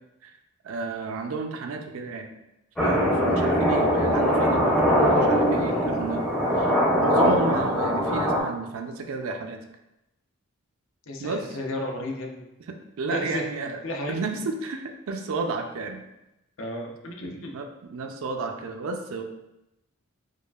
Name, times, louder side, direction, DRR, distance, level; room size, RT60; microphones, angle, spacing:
voice 1, 0.6-2.3 2.8-6.2 6.6-9.6 11.2-11.6 12.7-13.8 14.1-16.0 17.5-19.2, right 3 dB, 75° right, 5 dB, 0.4 m, -32 dB
sound 1, 2.8-8.4, equal, 5° left, 0.5 m, -22 dB
voice 2, 11.1-12.4 13.1-13.4 13.8-14.2 16.6-17.5, left 1 dB, 65° left, 1 dB, 0.6 m, -33 dB
4.7 x 2.4 x 2.3 m, 0.91 s
head